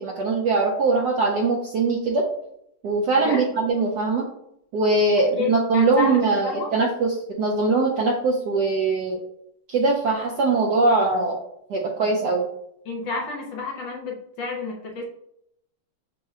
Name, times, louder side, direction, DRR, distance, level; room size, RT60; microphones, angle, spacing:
voice 1, 0.0-2.2 2.8-4.3 4.7-9.2 9.7-11.4 11.7-12.5, right 3 dB, 75° right, -1 dB, 0.9 m, -21 dB
voice 2, 5.4-6.7 12.9-15.0, left 4 dB, 70° left, 0 dB, 1.3 m, -30 dB
5.6 x 2.1 x 3.5 m, 0.76 s
omnidirectional pair, 2.3 m